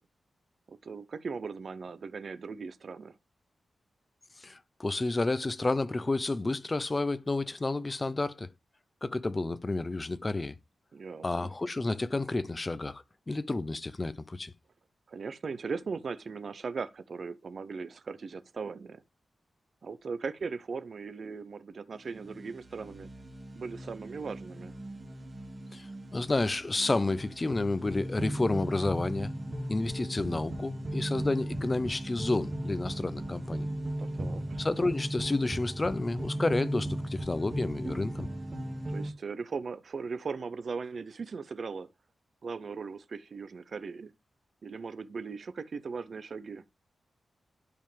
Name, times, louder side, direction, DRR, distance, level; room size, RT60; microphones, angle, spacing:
voice 1, 0.7-3.1 10.9-11.5 15.1-19.0 19.8-23.1 23.6-24.8 34.0-34.6 38.9-41.9 42.4-44.1 44.6-46.6, right 5 dB, 50° right, 0.7 m, -38 dB
voice 2, 4.4-8.5 9.0-10.5 11.2-14.5 25.7-25.9 26.1-29.3 29.7-33.7 34.6-38.3, left 2 dB, 25° left, 0.6 m, -30 dB
sound 1, 22.0-39.1, right 1 dB, 30° right, 2.0 m, -37 dB
12.0 x 5.4 x 3.4 m
wide cardioid pair, 140°, 0 cm